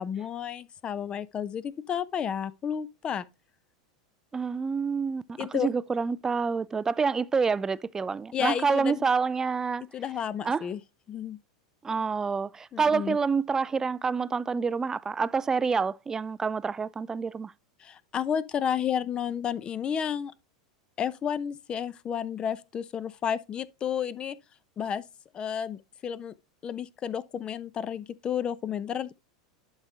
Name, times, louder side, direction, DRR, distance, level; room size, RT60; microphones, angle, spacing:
voice 1, 0.0-3.3 5.4-5.7 8.3-9.0 9.9-10.8 11.1-11.4 12.7-13.2 17.8-20.3 21.0-24.4 24.8-25.0 25.3-26.3 26.6-29.1, left 8 dB, 30° left, 0.7 m, -31 dB
voice 2, 4.3-9.8 10.4-10.6 11.8-17.5, right 5 dB, 15° right, 0.4 m, -27 dB
11.5 x 4.9 x 2.8 m
figure-of-eight pair, 85°, 3 cm